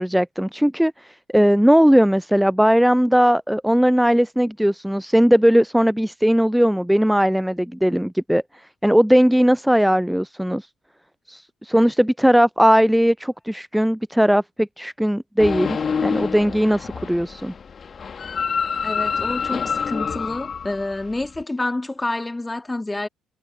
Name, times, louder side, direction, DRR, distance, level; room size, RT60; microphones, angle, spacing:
voice 1, 0.0-8.4 8.8-10.7 11.3-17.5, equal, 5° right, 0.5 m, -18 dB
sound 1, 15.4-21.4, left 6 dB, 40° left, 2.3 m, -27 dB
voice 2, 18.8-23.1, left 2 dB, 15° left, 1.9 m, -28 dB
figure-of-eight pair, 50°, 0 cm